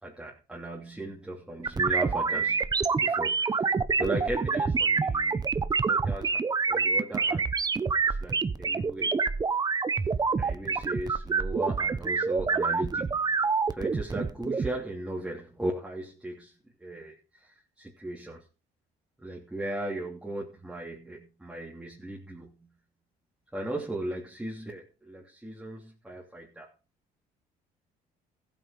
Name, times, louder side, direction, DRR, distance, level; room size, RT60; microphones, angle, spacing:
voice 1, 0.0-3.7 4.0-5.5 5.8-6.4 6.7-7.5 8.0-9.3 10.4-13.4 13.8-16.5 16.8-18.4 19.2-22.7 23.5-26.7, right 1 dB, 5° right, 3.0 m, -37 dB
sound 1, 1.6-14.7, right 5 dB, 25° right, 1.0 m, -27 dB
15.0 x 8.7 x 5.1 m
cardioid pair, 110°, 17 cm